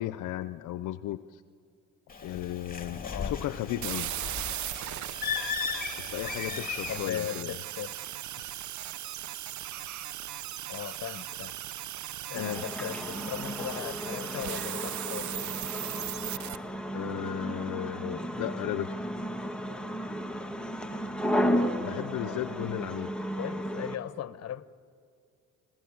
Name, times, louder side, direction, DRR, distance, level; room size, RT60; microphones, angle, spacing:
voice 1, 0.0-1.4 2.2-4.1 6.0-7.5 12.3-12.6 16.9-19.0 21.8-23.1, left 14 dB, 80° left, 0.6 m, -35 dB
Bird, 2.1-7.1, left 6 dB, 30° left, 2.8 m, -36 dB
voice 2, 3.0-3.4 6.4-7.9 10.7-11.5 12.3-15.6 22.2-22.5 23.4-24.7, left 10 dB, 55° left, 1.0 m, -38 dB
sound 1, 3.8-16.6, right 13 dB, 70° right, 0.7 m, -38 dB
sound 2, 12.3-24.0, equal, 5° left, 1.9 m, -33 dB
30.0 x 21.0 x 8.6 m
cardioid pair, 90°, 30 cm